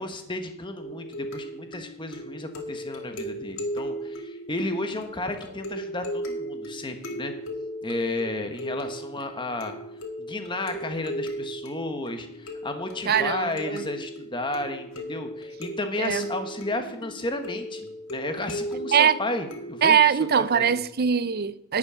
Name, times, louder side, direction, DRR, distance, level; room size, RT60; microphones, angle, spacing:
voice 1, 0.0-7.3 7.8-9.7 10.2-20.8, left 2 dB, 20° left, 1.3 m, -33 dB
sound 1, 0.8-20.0, equal, 60° left, 2.1 m, -36 dB
voice 2, 13.1-13.9 16.0-16.3 18.9-19.2 19.8-21.8, right 7 dB, 45° right, 0.5 m, -22 dB
11.5 x 6.3 x 8.8 m
head